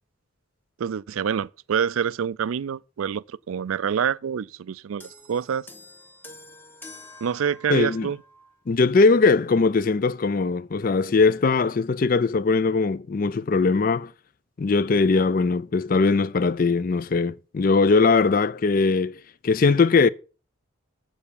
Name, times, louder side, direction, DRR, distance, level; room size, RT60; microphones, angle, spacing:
voice 1, 0.8-5.7 7.2-8.2, right 7 dB, 80° right, 0.4 m, -27 dB
sound 1, 5.0-8.6 9.5-9.6, left 2 dB, 10° left, 1.0 m, -47 dB
voice 2, 7.7-8.1 8.7-14.1 14.6-20.1, left 4 dB, 40° left, 0.4 m, -20 dB
7.6 x 7.1 x 6.9 m
head